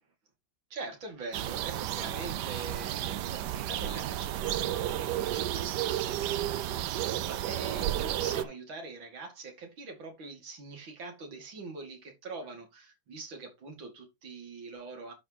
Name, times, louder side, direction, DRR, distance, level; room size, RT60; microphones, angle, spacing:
voice 1, 0.7-7.0 7.3-15.1, right 3 dB, 90° right, 3.0 m, -43 dB
sound 1, 1.3-8.4, right 12 dB, 70° right, 1.2 m, -32 dB
11.5 x 4.6 x 2.9 m
omnidirectional pair, 2.1 m